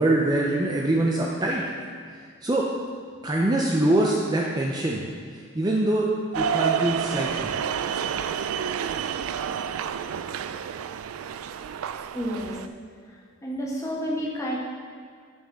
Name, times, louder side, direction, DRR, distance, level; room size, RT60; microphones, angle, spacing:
voice 1, 0.0-1.6 2.1-2.7 3.2-5.0 5.5-7.5, right 1 dB, 20° right, -2 dB, 0.5 m, -24 dB
sound 1, 6.3-12.7, right 7 dB, 75° right, 0.3 m, -29 dB
voice 2, 12.1-12.6 13.4-14.6, equal, 15° left, -4 dB, 1.1 m, -29 dB
9.0 x 5.9 x 3.6 m, 2.1 s
head